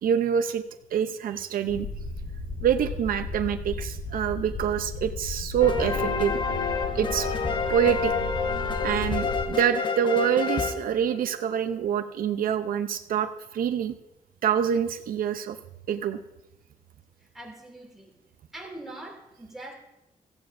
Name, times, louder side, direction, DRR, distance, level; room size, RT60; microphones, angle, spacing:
voice 1, 0.0-0.6 0.9-1.9 2.6-6.3 6.9-7.3 7.7-8.1 8.8-13.9 14.4-15.6 15.9-16.2, right 8 dB, 75° right, 9 dB, 0.6 m, -26 dB
sound 1, 1.7-9.4, left 3 dB, 60° left, 4.5 m, -35 dB
sound 2, 5.6-11.5, left 5 dB, 30° left, 0.9 m, -29 dB
voice 2, 17.2-18.1 18.5-19.7, right 1 dB, ahead, -2 dB, 2.4 m, -42 dB
16.0 x 15.0 x 2.6 m, 0.92 s
wide cardioid pair, 165°, 15 cm